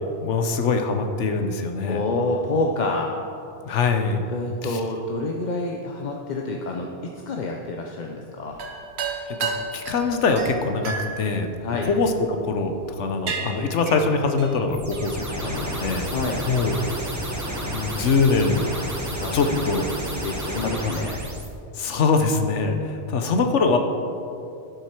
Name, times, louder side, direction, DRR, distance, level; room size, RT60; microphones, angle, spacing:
voice 1, 0.2-2.0 3.6-4.3 4.6-4.8 9.4-11.5 11.8-16.1 16.5-16.8 17.7-18.6 19.3-19.9 20.6-20.9 21.7-23.8, left 4 dB, 80° left, 5 dB, 1.2 m, -23 dB
voice 2, 1.9-3.2 4.3-8.6 11.6-11.9 16.0-16.5 19.2-19.7 20.1-21.2, left 3 dB, 45° left, 1 dB, 0.7 m, -28 dB
sound 1, 8.5-12.3 12.8-13.0 13.3-15.2, right 5 dB, 65° right, 1.1 m, -32 dB
sound 2, 14.7-21.5, right 1 dB, 15° right, 1.0 m, -31 dB
11.5 x 7.9 x 4.5 m, 2.7 s
omnidirectional pair, 1.2 m